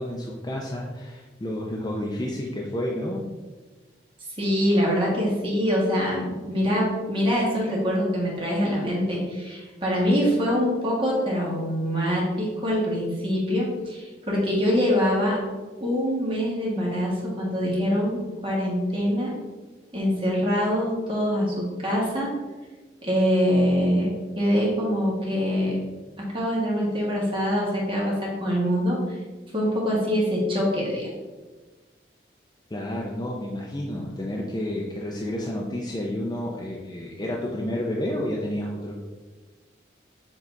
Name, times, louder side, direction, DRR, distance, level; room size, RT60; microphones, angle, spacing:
voice 1, 0.0-3.2 32.7-39.0, left 1 dB, 20° left, -2 dB, 0.5 m, -30 dB
voice 2, 4.4-15.4 15.8-19.3 19.9-22.4 23.0-25.8 26.2-29.2 29.5-31.1, equal, 30° right, -4 dB, 1.7 m, -24 dB
7.3 x 3.3 x 3.9 m, 1.3 s
head